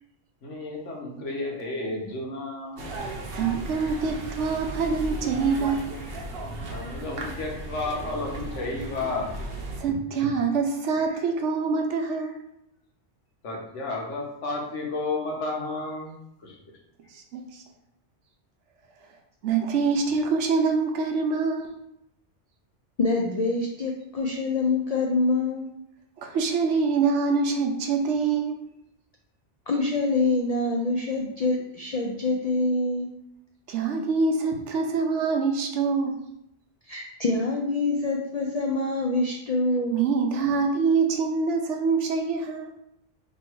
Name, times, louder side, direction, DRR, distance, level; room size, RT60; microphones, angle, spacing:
voice 1, 0.4-2.8 3.7-3.9 6.7-9.3 13.4-16.1 16.4-16.6, left 2 dB, 85° left, -1 dB, 1.3 m, -32 dB
sound 1, 2.8-9.8, right 1 dB, 55° right, 0.9 m, -35 dB
voice 2, 3.3-6.0 7.3-7.4 9.8-12.4 17.1-17.6 19.4-21.7 26.2-28.7 33.7-36.2 39.9-42.7, right 4 dB, 80° right, 3 dB, 0.9 m, -25 dB
voice 3, 23.0-25.7 29.7-33.1 36.9-40.0, left 2 dB, 65° left, 0 dB, 0.3 m, -25 dB
3.0 x 2.7 x 4.4 m, 0.77 s
omnidirectional pair, 1.2 m